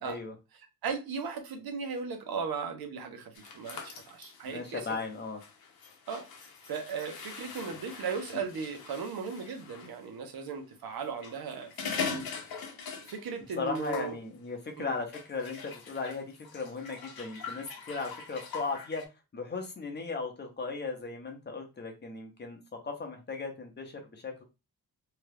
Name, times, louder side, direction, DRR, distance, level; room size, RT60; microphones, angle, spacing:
voice 1, 0.0-0.3 4.4-5.4 13.6-19.0 19.3-24.4, left 4 dB, 30° left, 0.6 m, -37 dB
voice 2, 0.8-4.9 6.1-12.3 13.1-14.2 14.8-14.9, right 5 dB, 80° right, 0.8 m, -37 dB
sound 1, 3.3-9.9 11.0-13.4 13.7-14.2 15.1-19.0, left 6 dB, 85° left, 0.7 m, -42 dB
2.9 x 2.3 x 3.2 m
wide cardioid pair, 175°, 35 cm